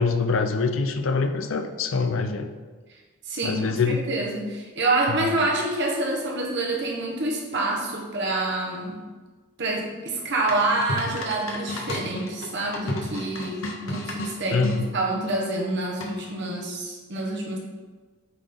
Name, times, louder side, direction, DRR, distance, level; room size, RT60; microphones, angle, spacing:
voice 1, 0.0-2.5 3.4-4.0 5.1-5.3 14.5-14.9, left 4 dB, 75° left, 8 dB, 0.6 m, -24 dB
voice 2, 3.3-3.8 4.1-9.0 9.6-17.6, right 2 dB, 60° right, -1 dB, 1.3 m, -27 dB
sound 1, 10.5-14.8 16.0-16.4, left 1 dB, 90° left, 0.9 m, -33 dB
8.4 x 3.9 x 3.8 m, 1.4 s
head